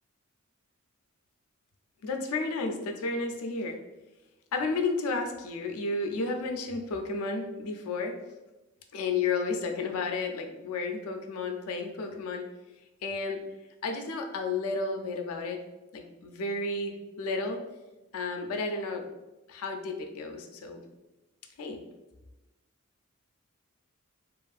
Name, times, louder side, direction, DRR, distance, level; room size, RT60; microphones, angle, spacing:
voice 1, 2.0-3.8 4.5-8.1 8.9-12.5 13.0-13.4 13.8-15.6 15.9-17.6 18.1-19.0 19.5-20.8 21.6-21.8, left 3 dB, 80° left, 4 dB, 0.4 m, -32 dB
2.9 x 2.5 x 2.3 m, 1.0 s
head